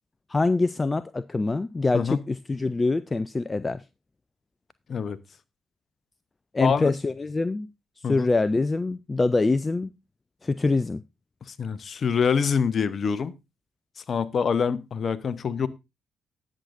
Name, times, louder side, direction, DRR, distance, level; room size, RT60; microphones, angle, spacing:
voice 1, 0.3-3.8 6.5-7.7 8.1-9.9 10.4-11.0, left 3 dB, 25° left, 0.4 m, -24 dB
voice 2, 6.6-6.9 8.0-8.3 11.6-13.3 14.1-15.7, left 6 dB, 45° left, 0.8 m, -25 dB
19.0 x 6.5 x 2.6 m
figure-of-eight pair, 40°, 0 cm